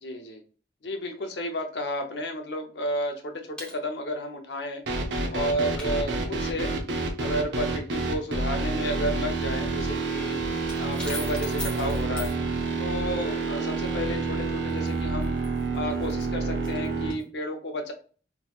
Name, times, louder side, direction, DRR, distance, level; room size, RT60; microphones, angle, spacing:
voice 1, 0.0-0.4 0.8-4.8 5.3-6.7 7.2-10.4 10.8-12.4 12.8-15.4 15.7-17.9, equal, 70° left, 3 dB, 0.7 m, -32 dB
sound 1, 3.6-3.8 5.8-5.9 9.1-9.2 9.7-9.8 10.1-12.3 14.7-17.2, left 1 dB, 5° left, 1.0 m, -40 dB
sound 2, 4.9-17.1, right 3 dB, 70° right, 0.7 m, -28 dB
3.7 x 3.0 x 2.3 m, 0.40 s
head